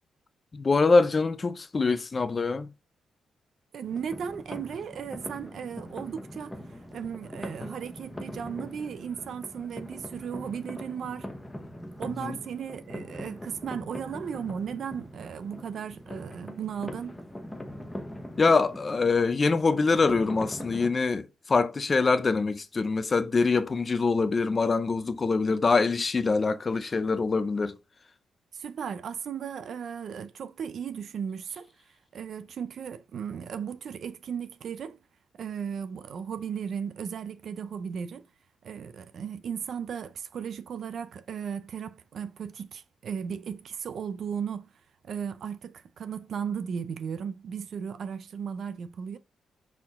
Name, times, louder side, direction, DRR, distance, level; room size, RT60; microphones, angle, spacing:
voice 1, 0.5-2.7 12.2-12.4 18.4-27.8, left 4 dB, 25° left, 0.6 m, -24 dB
voice 2, 3.7-11.3 12.0-17.2 28.5-31.7 32.1-35.0 35.4-38.3 38.6-44.7 45.0-49.2, right 7 dB, 55° right, 0.6 m, -36 dB
sound 1, 3.8-20.9, equal, 5° left, 0.9 m, -42 dB
5.9 x 4.6 x 3.6 m
wide cardioid pair, 160°, 0 cm